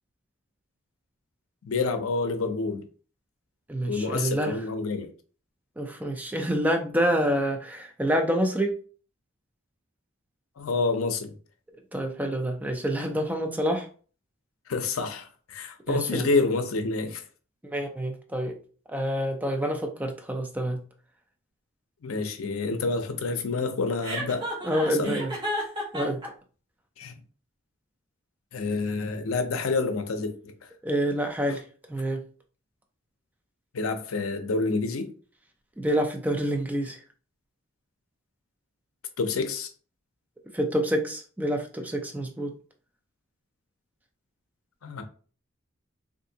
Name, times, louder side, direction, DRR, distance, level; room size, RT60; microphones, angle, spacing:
voice 1, 1.7-2.8 3.8-5.1 10.6-11.3 14.7-17.2 22.0-24.5 24.8-25.2 27.0-27.1 28.5-30.5 33.7-35.1 39.2-39.7 44.8-45.0, left 3 dB, 75° left, 0.5 m, -28 dB
voice 2, 3.7-4.6 5.8-8.7 11.9-13.9 15.9-16.3 17.6-18.6 18.9-20.8 24.6-25.3 25.9-26.2 30.8-31.6 31.9-32.2 35.8-37.0 40.5-42.5, right 1 dB, 10° right, 0.4 m, -27 dB
Chuckle chortle, 24.0-26.3, equal, 25° right, 1.4 m, -32 dB
3.6 x 2.5 x 2.7 m
head